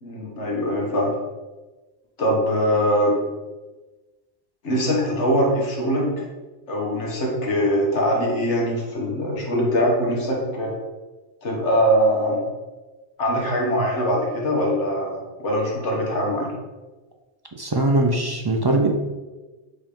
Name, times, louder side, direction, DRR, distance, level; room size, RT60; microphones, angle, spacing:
voice 1, 0.0-1.1 2.2-3.2 4.6-6.1 6.7-10.7 11.4-12.4 13.2-16.5, equal, 75° left, -2 dB, 1.7 m, -22 dB
voice 2, 17.6-18.9, right 2 dB, 40° right, 1 dB, 0.3 m, -21 dB
5.2 x 3.6 x 5.3 m, 1.2 s
omnidirectional pair, 1.2 m